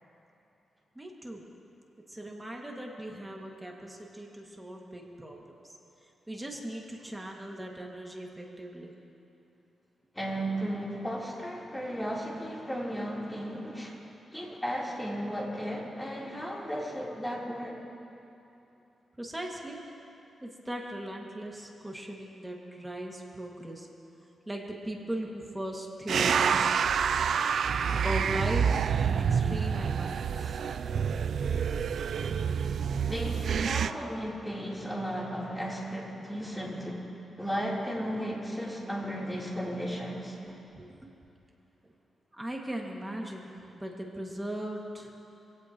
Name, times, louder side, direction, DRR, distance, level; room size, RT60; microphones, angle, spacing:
voice 1, 1.0-1.4 2.1-5.7 6.3-8.9 19.2-19.8 20.4-23.9 24.5-26.9 27.9-30.6 40.5-41.1 42.3-43.5 43.7-45.1, right 1 dB, 10° right, -1 dB, 2.2 m, -38 dB
voice 2, 10.1-14.0 14.3-17.8 33.1-37.0 37.4-40.4, equal, 5° left, -5 dB, 3.8 m, -35 dB
sound 1, 26.1-33.9, right 7 dB, 70° right, 0.5 m, -28 dB
26.0 x 17.0 x 3.1 m, 2.9 s
cardioid pair, 95°, 0 cm